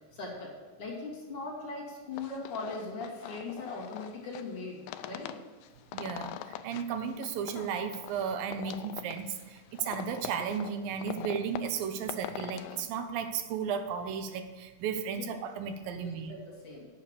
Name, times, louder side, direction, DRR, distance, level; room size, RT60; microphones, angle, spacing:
voice 1, 0.1-5.4 15.1-15.2 15.9-16.9, left 3 dB, 45° left, -4 dB, 3.2 m, -40 dB
sound 1, 2.1-12.9, left 11 dB, 85° left, 2.3 m, -43 dB
voice 2, 5.9-16.3, right 7 dB, 85° right, 8 dB, 2.6 m, -34 dB
9.1 x 8.2 x 6.8 m, 1.3 s
omnidirectional pair, 4.0 m